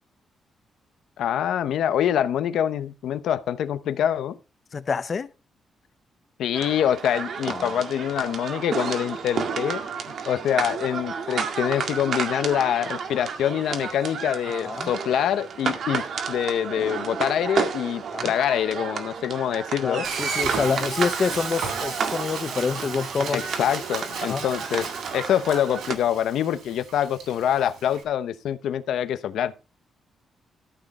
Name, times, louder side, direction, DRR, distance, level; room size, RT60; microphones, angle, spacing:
voice 1, 1.2-4.4 6.4-9.8 10.2-20.1 23.3-24.9 25.1-29.5, left 10 dB, 85° left, 0.9 m, -25 dB
voice 2, 4.7-5.3 7.5-7.7 14.6-14.9 18.1-18.3 19.8-23.4 24.2-24.4, left 5 dB, 40° left, 0.7 m, -27 dB
sound 1, 6.5-26.0, right 6 dB, 60° right, 2.0 m, -31 dB
Frying (food), 20.0-28.0, right 6 dB, 75° right, 4.3 m, -35 dB
13.5 x 7.7 x 4.2 m
cardioid pair, 135°, 0 cm